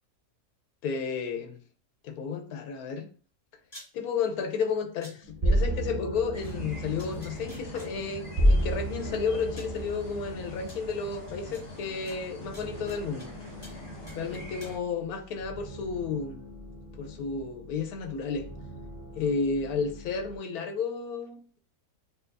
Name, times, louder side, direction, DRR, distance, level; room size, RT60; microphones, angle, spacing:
voice 1, 0.8-1.6 2.0-3.1 3.9-13.3 14.1-16.4 17.0-18.5 19.2-21.6, left 5 dB, 85° left, 6 dB, 1.1 m, -32 dB
sound 1, 3.6-3.9 5.0-5.1 6.4-6.5 7.0-7.9 8.9-9.0 9.6-9.8 10.7-10.8 11.5-11.6 12.1-13.3 13.6-13.8 14.1-14.7, left 1 dB, 15° left, 1.8 m, -49 dB
sound 2, 5.2-20.4, equal, 65° right, 0.3 m, -33 dB
sound 3, 6.3-14.8, equal, 60° left, 2.4 m, -43 dB
6.4 x 2.3 x 2.5 m, 0.41 s
omnidirectional pair, 1.5 m